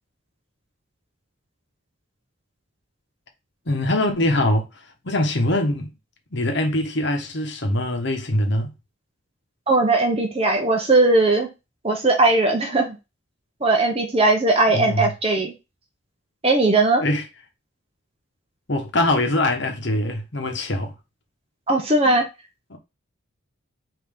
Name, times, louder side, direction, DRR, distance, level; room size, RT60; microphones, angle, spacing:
voice 1, 3.7-4.7 5.0-5.9 6.3-8.7 14.7-15.1 17.0-17.2 18.7-20.9 22.0-22.1 22.7-22.8, left 1 dB, 55° left, 1.0 m, -23 dB
voice 2, 9.7-11.5 11.8-13.0 13.6-15.5 16.4-17.0 21.7-22.2, right 2 dB, 30° right, 0.7 m, -18 dB
5.4 x 2.8 x 3.5 m
head